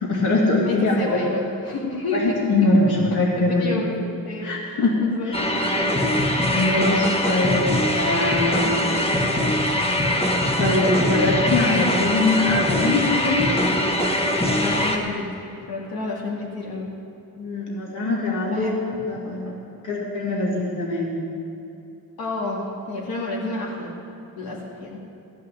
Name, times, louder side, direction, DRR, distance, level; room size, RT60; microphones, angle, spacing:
voice 1, 0.0-1.2 2.1-3.6 4.4-5.0 5.3-5.4 6.5-7.7 7.9-8.8 10.6-13.5 17.4-18.7 19.1-19.5 19.8-21.2, left 2 dB, 55° left, -3 dB, 2.4 m, -22 dB
voice 2, 0.6-2.4 3.4-4.0 4.2-5.3 5.7-6.1 7.4-7.8 8.6-9.0 14.5-16.9 18.5-18.8 22.2-23.9 24.4-25.1, left 2 dB, 85° left, -4 dB, 2.3 m, -30 dB
sound 1, 5.3-15.0, left 1 dB, 15° left, 1.1 m, -22 dB
15.5 x 5.6 x 9.9 m, 2.7 s
wide cardioid pair, 160°, 36 cm